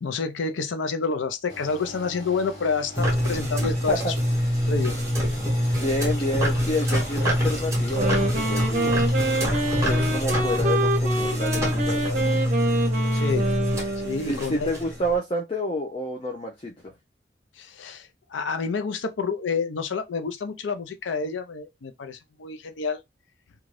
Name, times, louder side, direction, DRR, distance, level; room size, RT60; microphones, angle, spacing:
voice 1, 0.0-4.1 4.7-5.0 13.1-13.5 14.0-14.8 17.6-23.0, left 4 dB, 90° left, 0.5 m, -29 dB
sound 1, 1.5-10.2, left 1 dB, 60° left, 1.1 m, -41 dB
sound 2, 2.9-15.2, equal, 15° right, 1.0 m, -25 dB
voice 2, 5.7-8.9 9.8-12.4 14.3-16.9, equal, 30° left, 0.4 m, -29 dB
Wind instrument woodwind instrument, 7.8-14.4, right 1 dB, 40° right, 0.7 m, -27 dB
2.5 x 2.3 x 3.1 m
head